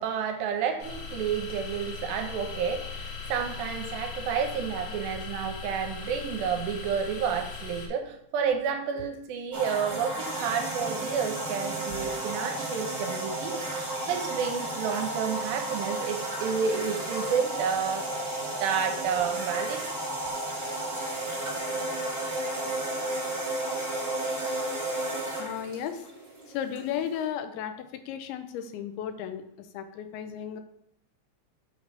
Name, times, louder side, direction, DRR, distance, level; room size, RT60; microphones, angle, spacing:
voice 1, 0.0-18.1 18.6-19.9, right 7 dB, 80° right, 5 dB, 2.4 m, -30 dB
sound 1, 0.8-7.9, left 5 dB, 65° left, 2.9 m, -39 dB
sound 2, 9.5-27.2, right 1 dB, 45° right, 0.5 m, -33 dB
voice 2, 25.4-26.1 26.5-30.6, left 9 dB, 90° left, 8 dB, 2.6 m, -34 dB
7.6 x 5.3 x 3.3 m, 0.76 s
omnidirectional pair, 4.3 m